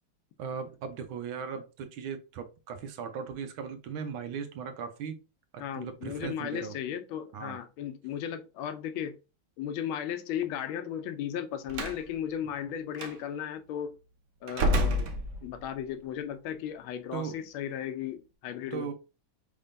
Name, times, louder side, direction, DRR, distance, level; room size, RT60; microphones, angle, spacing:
voice 1, 0.4-5.2 5.5-6.7 7.3-7.6 17.1-17.4 18.7-18.9, right 6 dB, 80° right, 1.6 m, -38 dB
voice 2, 5.6-9.2 9.6-13.9 14.4-15.1 15.4-18.9, left 9 dB, 80° left, 1.5 m, -35 dB
Slam, 11.7-12.0 13.0-13.1 14.5-15.8, equal, 65° right, 0.7 m, -28 dB
5.5 x 3.7 x 2.6 m
omnidirectional pair, 2.2 m